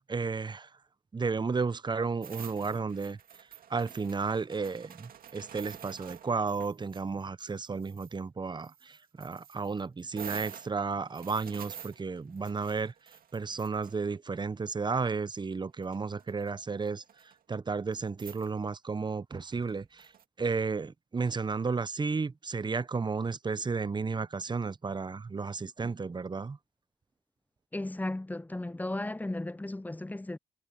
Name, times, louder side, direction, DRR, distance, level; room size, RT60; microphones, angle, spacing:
voice 1, 0.1-0.7 1.1-3.2 3.7-12.9 13.3-20.1 20.4-26.6, right 4 dB, 30° right, 0.7 m, -33 dB
sound 1, 2.2-7.0 7.4-8.1 8.6-14.4 15.3-15.4 15.8-16.5 16.8-17.3 17.9-18.0 18.2-18.5 19.5-20.2, right 9 dB, 70° right, 2.0 m, -48 dB
voice 2, 27.7-30.4, left 2 dB, 10° left, 0.6 m, -35 dB
supercardioid pair, 50°, 16 cm